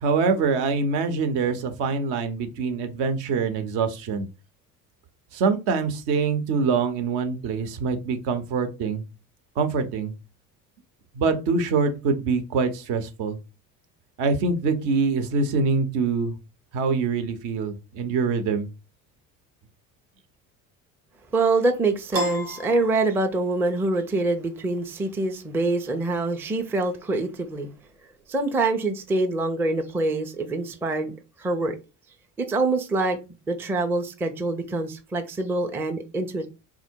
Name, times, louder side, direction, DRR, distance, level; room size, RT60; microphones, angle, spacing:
voice 1, 0.0-4.3 5.3-9.0 9.6-10.1 11.1-13.4 14.2-16.3 16.7-18.7, right 4 dB, 60° right, 0.8 m, -24 dB
voice 2, 21.3-27.7 28.3-31.1 31.4-31.7 32.4-33.2 33.5-36.5, right 2 dB, 5° right, 0.4 m, -25 dB
Piano, 22.1-23.7, right 1 dB, 85° right, 1.0 m, -31 dB
3.6 x 2.1 x 4.4 m
hypercardioid pair, 60°, 46 cm